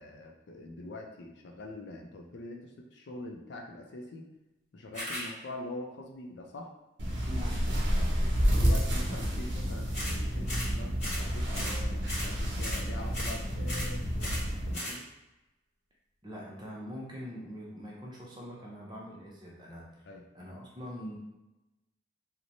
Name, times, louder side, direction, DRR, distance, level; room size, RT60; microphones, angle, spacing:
voice 1, 0.0-4.3 4.7-6.7 8.5-14.4 14.7-15.1 20.0-20.2, left 2 dB, 70° left, 1 dB, 0.4 m, -43 dB
sound 1, 4.9-5.3 9.9-10.2 10.5-10.7 11.0-11.3 11.5-11.8 12.1-12.3 12.6-12.9 13.1-13.4 13.7-13.9 14.2-14.5 14.7-15.0, equal, 35° left, 1.1 m, -37 dB
sound 2, 7.0-14.7, equal, 75° right, 0.6 m, -30 dB
voice 2, 7.3-8.6 16.2-19.8 20.3-21.2, equal, 25° right, -3 dB, 0.5 m, -43 dB
2.9 x 2.1 x 2.6 m, 1.0 s
head